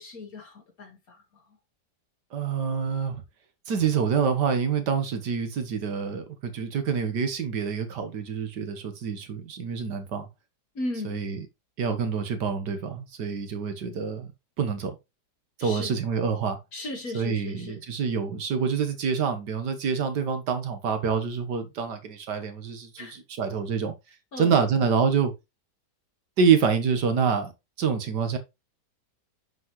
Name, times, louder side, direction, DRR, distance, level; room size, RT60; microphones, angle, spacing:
voice 1, 0.0-1.4 10.8-11.2 15.6-15.9 16.7-17.8 23.0-23.2 24.3-24.5, left 2 dB, 55° left, 1.8 m, -37 dB
voice 2, 2.3-3.2 3.7-10.3 11.1-11.5 11.8-14.3 14.6-14.9 15.6-16.6 17.1-23.9 24.4-25.3 26.4-27.5 27.8-28.4, right 6 dB, 75° right, 1.9 m, -26 dB
7.5 x 5.8 x 3.1 m
omnidirectional pair, 1.9 m